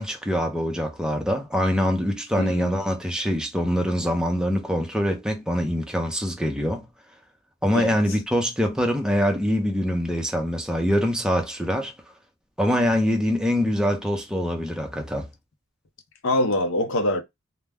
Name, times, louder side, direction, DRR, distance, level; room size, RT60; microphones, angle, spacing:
voice 1, 0.0-6.9 7.6-11.9 12.6-15.3, equal, 5° right, 0.6 m, -24 dB
voice 2, 2.4-2.8 7.7-8.0 16.2-17.2, left 1 dB, 65° left, 0.6 m, -24 dB
2.2 x 2.1 x 3.4 m
head